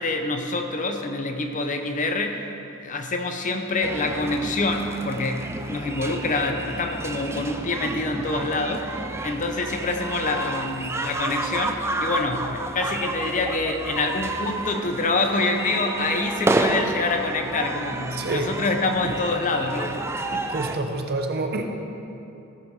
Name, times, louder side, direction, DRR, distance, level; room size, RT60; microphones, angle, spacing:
voice 1, 0.0-2.5 2.8-20.0 20.3-20.5, left 2 dB, 35° left, 5 dB, 0.7 m, -26 dB
sound 1, 3.8-20.8, right 2 dB, 10° right, 0.4 m, -30 dB
voice 2, 18.1-18.5 20.5-21.7, right 2 dB, 50° right, 4 dB, 0.8 m, -27 dB
15.0 x 6.7 x 4.8 m, 2.8 s
head